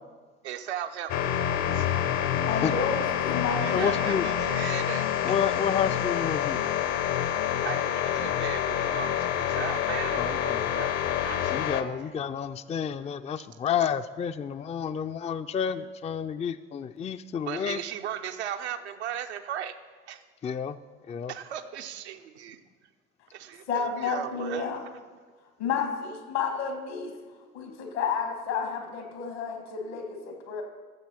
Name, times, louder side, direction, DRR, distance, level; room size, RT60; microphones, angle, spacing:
voice 1, 0.4-1.5 1.7-1.9 3.6-5.2 7.6-10.9 11.2-11.4 17.4-19.8 20.1-20.2 21.3-22.6 23.3-24.7, right 10 dB, 80° right, 7 dB, 0.8 m, -37 dB
sound 1, 1.1-11.8, left 10 dB, 55° left, 0.9 m, -27 dB
voice 2, 2.5-4.0 23.7-24.8 25.6-27.1 27.5-30.6, left 5 dB, 75° left, 4 dB, 2.0 m, -31 dB
voice 3, 3.7-4.3 5.2-6.6 10.2-10.7 11.5-17.8 20.4-20.8 21.1-21.3, left 7 dB, 20° left, 11 dB, 0.4 m, -30 dB
13.0 x 7.3 x 5.7 m, 1.5 s
figure-of-eight pair, 55°, 33 cm